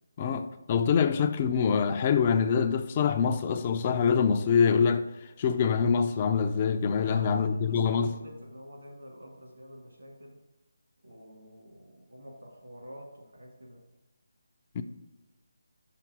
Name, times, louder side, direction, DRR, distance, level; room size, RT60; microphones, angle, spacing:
voice 1, 0.2-5.1 5.4-8.2 14.8-14.9, left 6 dB, 25° left, 0.3 m, -25 dB
voice 2, 7.0-10.4 11.0-13.8, equal, 75° right, 2.1 m, -48 dB
5.8 x 3.9 x 5.9 m
figure-of-eight pair, 170°, 0 cm